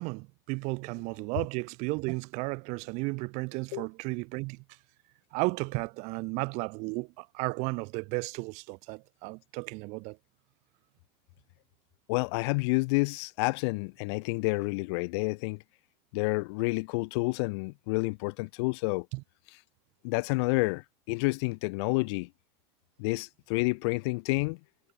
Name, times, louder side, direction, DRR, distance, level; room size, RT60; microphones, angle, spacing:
voice 1, 0.0-4.6 5.3-10.2 19.1-19.2, right 28 dB, 50° right, 2.9 m, -34 dB
voice 2, 12.1-15.6 16.1-19.1 20.0-22.3 23.0-24.6, left 28 dB, 60° left, 0.8 m, -29 dB
cardioid pair, 170°, 15 cm